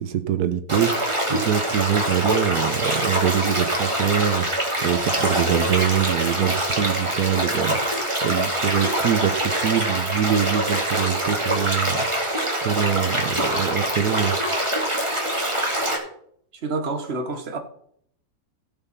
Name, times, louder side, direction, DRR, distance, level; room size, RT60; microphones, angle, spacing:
voice 1, 0.0-12.3 12.6-14.4, right 9 dB, 85° right, 1.4 m, -24 dB
sound 1, 0.7-16.0, right 1 dB, 20° right, 2.4 m, -24 dB
voice 2, 16.6-17.6, right 3 dB, 45° right, 1.5 m, -28 dB
16.5 x 5.5 x 5.7 m
omnidirectional pair, 1.7 m